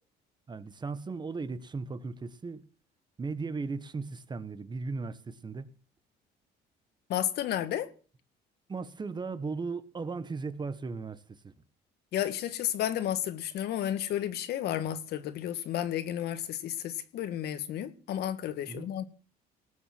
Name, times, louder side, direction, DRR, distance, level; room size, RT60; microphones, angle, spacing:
voice 1, 0.5-2.7 3.2-5.7 8.7-11.5 18.7-18.9, right 4 dB, 25° right, 1.4 m, -37 dB
voice 2, 7.1-7.9 12.1-19.1, left 11 dB, 75° left, 1.9 m, -32 dB
19.0 x 7.2 x 7.6 m
cardioid pair, 110°, 17 cm